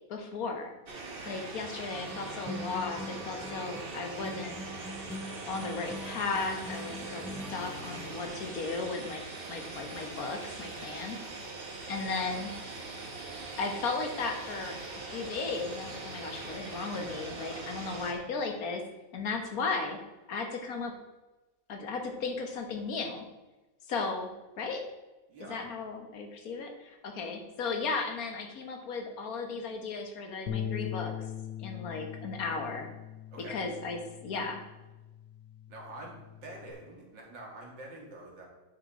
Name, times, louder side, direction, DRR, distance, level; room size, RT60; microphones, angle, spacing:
voice 1, 0.1-0.7 1.2-4.6 5.4-9.2 9.5-11.2 11.9-12.5 13.6-14.8 15.0-18.8 19.1-20.0 20.3-20.9 21.7-23.2 23.9-24.3 24.6-24.8 25.4-31.3 31.6-32.9 33.5-34.6, left 4 dB, 55° left, 4 dB, 1.7 m, -35 dB
sound 1, 0.9-18.1, right 3 dB, 35° right, 1.3 m, -42 dB
sound 2, 1.9-8.2, left 1 dB, ahead, 0.5 m, -43 dB
voice 2, 25.3-25.6 33.3-33.6 35.7-38.5, right 2 dB, 85° right, -1 dB, 2.7 m, -46 dB
Bass guitar, 30.5-36.7, left 9 dB, 90° left, 1.4 m, -41 dB
10.0 x 6.0 x 4.2 m, 1.1 s
omnidirectional pair, 1.9 m